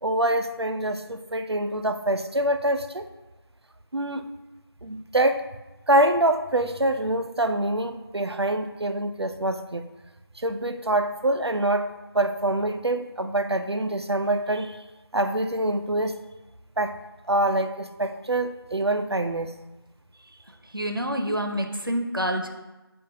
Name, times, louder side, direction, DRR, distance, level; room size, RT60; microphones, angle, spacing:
voice 1, 0.0-3.1 3.9-4.3 4.8-5.5 5.9-9.9 10.4-14.8 15.1-16.2 16.8-17.0 17.3-19.6, right 1 dB, 90° right, 8 dB, 0.6 m, -25 dB
voice 2, 20.2-22.5, equal, 60° right, 4 dB, 0.8 m, -28 dB
7.7 x 2.6 x 5.1 m, 1.1 s
figure-of-eight pair, 175°, 13 cm